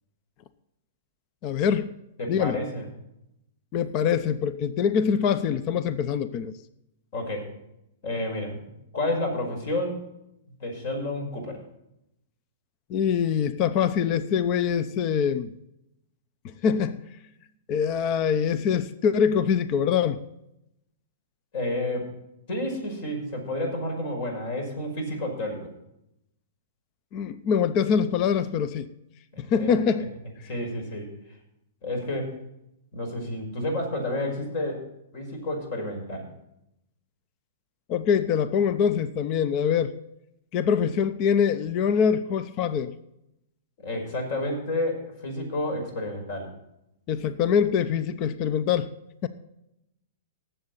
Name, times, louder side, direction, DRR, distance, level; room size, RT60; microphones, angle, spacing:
voice 1, 1.4-1.9 2.3-2.6 3.7-6.5 12.9-15.5 16.6-17.0 17.7-20.2 27.1-28.9 29.4-30.1 37.9-39.9 40.5-42.9 47.1-48.9 49.2-49.3, left 7 dB, 40° left, 14 dB, 0.7 m, -24 dB
voice 2, 2.2-2.9 7.1-7.5 8.0-10.0 10.6-11.6 21.5-22.1 22.5-25.7 29.3-29.7 30.5-31.1 31.8-32.3 32.9-34.8 35.1-36.3 43.8-46.5, left 1 dB, 55° left, 3 dB, 5.5 m, -30 dB
18.5 x 7.8 x 4.1 m, 0.83 s
hypercardioid pair, 130°, 0 cm